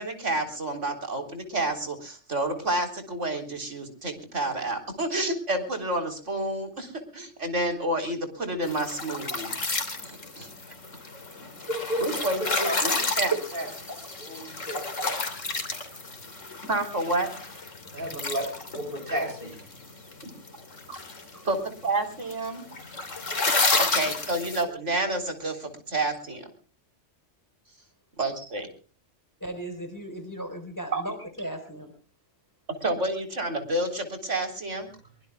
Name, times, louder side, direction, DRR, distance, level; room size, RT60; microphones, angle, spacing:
voice 1, 0.0-9.6 10.0-10.5 12.0-13.4 16.7-17.3 20.9-21.0 21.4-22.7 23.8-26.5 28.2-28.7 30.9-31.0 32.8-34.9, right 2 dB, 70° right, 6 dB, 4.1 m, -29 dB
sound 1, 8.6-24.6, left 3 dB, 80° left, 3.4 m, -31 dB
voice 2, 11.7-12.1 12.4-12.8 13.5-13.9 14.2-15.2 17.9-18.4 18.8-19.6, equal, 45° right, 4 dB, 7.9 m, -32 dB
voice 3, 29.4-31.9, right 1 dB, 15° left, 7 dB, 4.1 m, -37 dB
23.5 x 23.5 x 2.3 m, 0.38 s
omnidirectional pair, 1.3 m